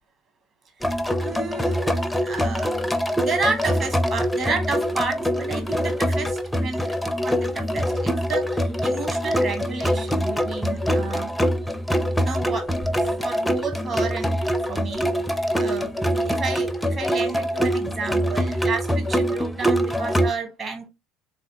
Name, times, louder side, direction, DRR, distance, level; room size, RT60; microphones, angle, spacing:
sound 1, 0.8-20.3, equal, 5° left, 0.4 m, -24 dB
voice 1, 1.2-11.3 12.2-14.4 14.7-15.1 15.5-20.9, right 4 dB, 40° right, 1.3 m, -31 dB
3.7 x 3.0 x 2.8 m
figure-of-eight pair, 60°, 0 cm